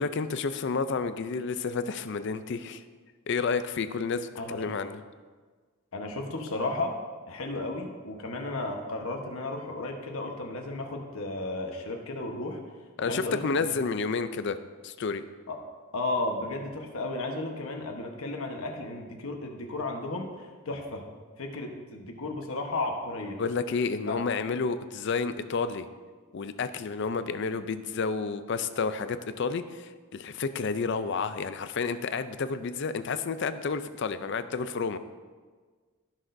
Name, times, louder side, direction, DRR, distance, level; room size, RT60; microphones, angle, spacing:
voice 1, 0.0-2.8 3.3-5.0 13.0-14.6 14.8-15.2 23.4-25.9 26.3-35.0, left 4 dB, 55° left, 11 dB, 0.4 m, -30 dB
voice 2, 4.3-4.7 5.9-7.0 7.3-12.6 13.0-13.6 15.5-15.6 15.9-21.1 21.4-23.4 24.1-24.2, left 2 dB, 75° left, 2 dB, 1.1 m, -34 dB
15.5 x 6.2 x 2.6 m, 1.5 s
head